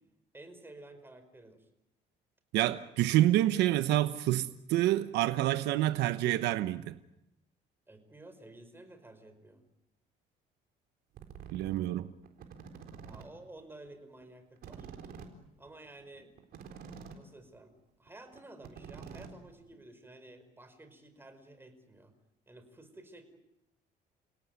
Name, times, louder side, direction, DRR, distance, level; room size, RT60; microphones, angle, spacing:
voice 1, 0.3-1.6 7.9-9.6 13.0-14.9 15.6-16.3 17.1-17.7 18.0-22.1 22.5-23.4, right 2 dB, 15° right, 5.1 m, -52 dB
voice 2, 2.5-6.9 11.5-12.1, right 14 dB, 85° right, 1.0 m, -28 dB
sound 1, 11.2-11.8 12.2-13.2 13.6-13.7 13.9-14.0 14.2-14.3 14.6-17.2 17.6-17.7 18.1-18.2 18.3-19.8, right 7 dB, 65° right, 4.1 m, -47 dB
29.5 x 17.5 x 9.6 m
cardioid pair, 110°, 17 cm